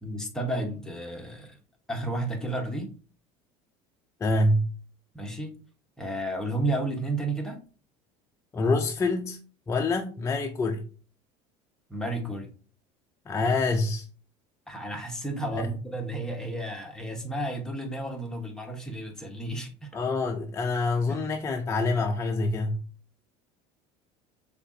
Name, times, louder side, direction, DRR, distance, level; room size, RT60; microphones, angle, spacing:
voice 1, 0.0-1.6 1.9-2.9 5.1-5.5 6.0-7.6 11.9-12.5 14.7-19.9 21.1-21.4, right 1 dB, 5° left, 1.0 m, -32 dB
voice 2, 4.2-4.7 8.5-9.4 9.7-10.8 13.3-14.1 15.5-15.7 19.9-22.8, left 2 dB, 20° left, 0.4 m, -26 dB
6.5 x 2.4 x 2.6 m
supercardioid pair, 115°, 14 cm